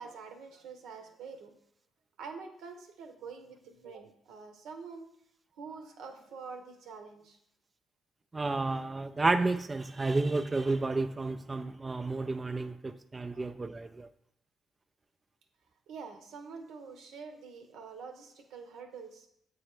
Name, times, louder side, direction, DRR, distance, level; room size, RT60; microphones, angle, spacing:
voice 1, 0.0-1.5 2.2-5.1 5.6-7.4 13.3-13.5 15.9-19.3, right 5 dB, 80° right, 0.9 m, -46 dB
voice 2, 8.3-14.1, right 3 dB, 25° right, 0.3 m, -31 dB
7.6 x 3.2 x 4.8 m
cardioid pair, 90°, 0 cm